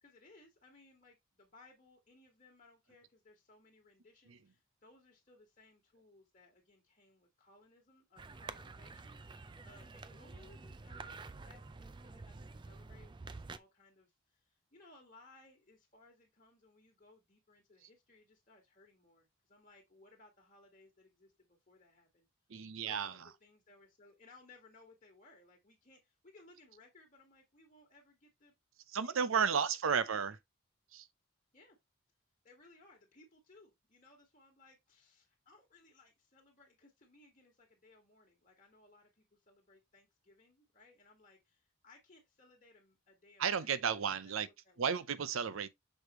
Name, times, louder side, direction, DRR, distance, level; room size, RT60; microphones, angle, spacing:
voice 1, 0.0-11.2 11.4-22.3 22.8-28.5 28.9-30.3 31.5-31.8 32.4-45.1, left 2 dB, 40° left, 1.6 m, -63 dB
sound 1, 8.2-13.6, right 3 dB, 20° right, 0.3 m, -49 dB
voice 2, 22.5-23.1 28.9-30.4 30.9-31.1 43.4-44.5 44.8-45.7, right 6 dB, 80° right, 0.6 m, -33 dB
6.4 x 4.9 x 3.0 m
head